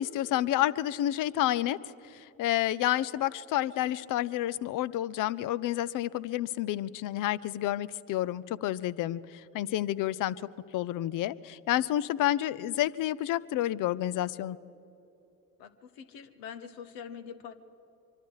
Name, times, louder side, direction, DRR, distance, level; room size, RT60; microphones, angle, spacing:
voice 1, 0.0-1.8 2.0-10.4 10.7-14.6, left 13 dB, 50° left, 19 dB, 0.7 m, -29 dB
voice 2, 15.6-17.5, left 7 dB, 70° left, 11 dB, 1.4 m, -44 dB
25.0 x 24.5 x 4.8 m, 3.0 s
hypercardioid pair, 55°, 40 cm